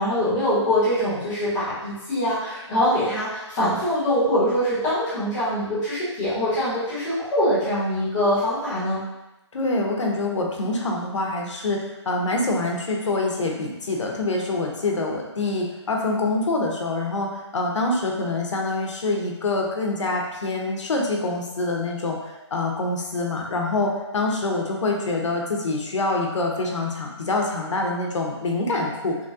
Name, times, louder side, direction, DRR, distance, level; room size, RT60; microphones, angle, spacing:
voice 1, 0.0-9.0, equal, 5° left, -16 dB, 0.3 m, -23 dB
voice 2, 9.5-22.2 22.5-29.2, left 2 dB, 80° left, 0 dB, 0.7 m, -25 dB
3.0 x 2.6 x 2.3 m, 1.0 s
hypercardioid pair, 175°, 15 cm